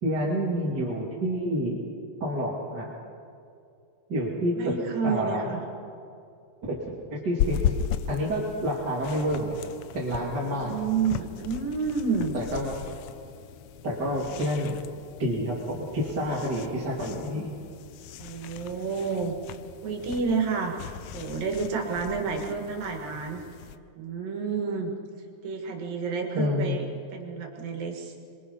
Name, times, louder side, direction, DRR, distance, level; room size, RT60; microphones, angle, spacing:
voice 1, 0.0-1.8 2.2-2.9 4.1-4.8 5.0-5.6 6.7-6.8 7.1-7.6 8.1-9.6 9.9-10.7 12.3-12.8 13.8-14.8 15.2-17.5 26.3-26.8, equal, 30° right, -5 dB, 3.0 m, -28 dB
voice 2, 4.6-5.6 10.4-12.4 14.3-14.5 18.2-19.4 19.8-20.7 21.1-23.4 24.0-24.9 25.4-26.8 27.1-28.1, right 5 dB, 85° right, 2 dB, 3.7 m, -30 dB
sound 1, 7.4-23.8, left 10 dB, 80° left, 1.5 m, -37 dB
26.0 x 22.5 x 5.5 m, 2.5 s
omnidirectional pair, 3.9 m